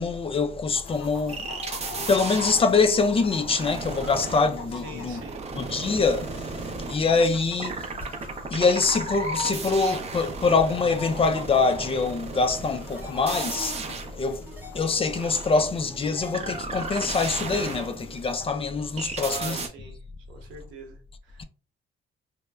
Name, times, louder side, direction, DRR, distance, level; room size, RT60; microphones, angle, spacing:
voice 1, 0.0-1.5 2.1-5.2 5.5-7.9 8.5-14.5 14.7-19.6 21.4-21.5, left 4 dB, 30° left, 0.3 m, -24 dB
Chicken rooster, 0.7-18.5, left 3 dB, 85° left, 0.6 m, -41 dB
sound 1, 1.3-7.3 7.6-18.3 19.0-19.7, right 4 dB, 35° right, 0.5 m, -36 dB
voice 2, 4.7-5.5 19.2-20.0 20.3-21.4, right 4 dB, 90° right, 0.8 m, -41 dB
sound 2, 8.0-8.3 9.6-9.9 11.2-11.5 12.8-13.6 14.4-15.2 16.0-17.2, right 1 dB, 10° right, 0.9 m, -44 dB
3.0 x 2.0 x 2.2 m
cardioid pair, 90°, 20 cm